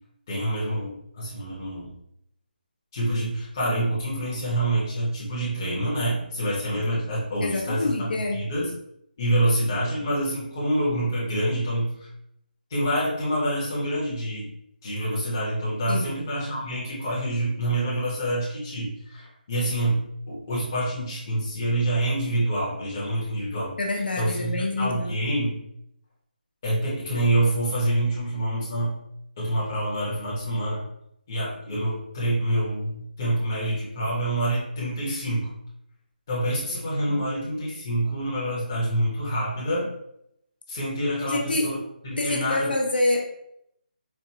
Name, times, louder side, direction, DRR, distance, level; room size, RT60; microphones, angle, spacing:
voice 1, 0.3-1.9 2.9-8.7 9.2-12.1 12.7-14.5 14.8-23.7 24.1-25.6 26.6-29.0 29.4-30.8 31.3-35.5 36.3-39.9 40.7-41.8 42.0-42.7, right 1 dB, 20° left, -8 dB, 0.9 m, -26 dB
voice 2, 7.4-8.4 15.9-16.2 23.8-25.2 37.1-37.2 41.2-41.7 42.2-43.2, left 2 dB, 70° left, 0 dB, 0.9 m, -26 dB
4.3 x 2.5 x 2.8 m, 0.77 s
hypercardioid pair, 180°, 5 cm